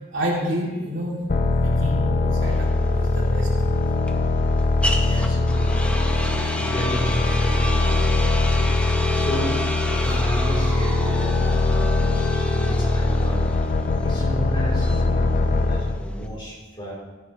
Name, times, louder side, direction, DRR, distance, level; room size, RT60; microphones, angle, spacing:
voice 1, 0.1-1.2 1.5-3.8 5.0-5.1, equal, 75° right, -4 dB, 2.7 m, -29 dB
sound 1, 1.3-16.0, left 2 dB, 45° left, 0.6 m, -21 dB
sound 2, 2.4-16.3, equal, 5° left, 0.8 m, -31 dB
voice 2, 4.9-6.0 6.5-8.7 9.1-9.6 10.0-13.5 14.0-16.9, equal, 25° left, -5 dB, 3.3 m, -34 dB
sound 3, 7.8-12.0, right 1 dB, 10° right, 3.5 m, -39 dB
14.5 x 8.0 x 3.1 m, 1.3 s
head